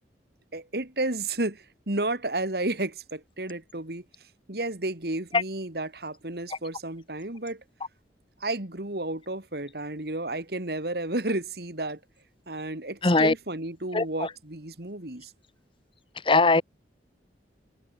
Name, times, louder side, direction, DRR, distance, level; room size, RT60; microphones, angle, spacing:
voice 1, 0.5-4.0 4.5-7.6 8.4-12.0 12.5-15.3, right 2 dB, 60° right, 2.6 m, -32 dB
voice 2, 13.0-13.3 13.9-14.0 16.3-16.6, left 3 dB, 30° left, 1.1 m, -19 dB
head